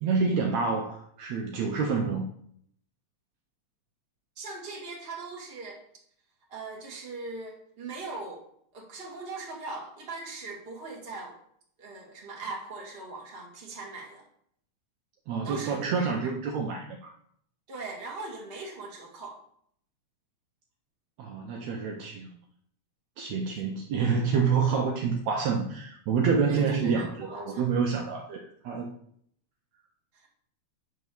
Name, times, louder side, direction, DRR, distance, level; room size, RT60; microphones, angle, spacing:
voice 1, 0.0-2.3 15.3-17.1 21.2-22.3 23.2-28.9, right 5 dB, 70° right, 1 dB, 1.8 m, -28 dB
voice 2, 4.3-5.8 6.5-8.4 8.7-11.4 11.8-14.2 15.4-16.3 17.7-19.4 26.5-27.7, right 3 dB, 20° right, -3 dB, 1.7 m, -40 dB
9.1 x 3.7 x 6.7 m, 0.67 s
omnidirectional pair, 3.6 m